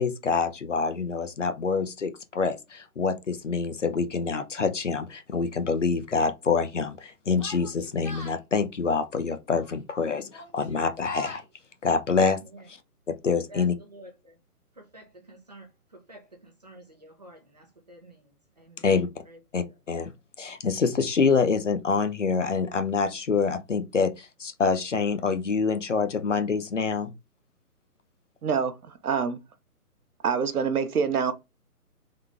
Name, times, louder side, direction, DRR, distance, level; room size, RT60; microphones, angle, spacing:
voice 1, 0.0-11.4 11.8-12.4 13.1-13.7 18.8-19.1 19.5-20.1 20.4-27.1, left 5 dB, 50° left, 0.8 m, -26 dB
Yell, 7.3-8.4 9.5-9.9 10.2-11.5, left 1 dB, 20° left, 1.0 m, -44 dB
voice 2, 12.3-12.7 13.3-14.4 14.7-18.9 19.2-19.8, right 1 dB, 25° right, 0.8 m, -50 dB
voice 3, 28.4-28.8 29.0-29.4 30.2-31.3, right 6 dB, 70° right, 0.9 m, -25 dB
3.9 x 3.2 x 3.4 m
hypercardioid pair, 180°, 47 cm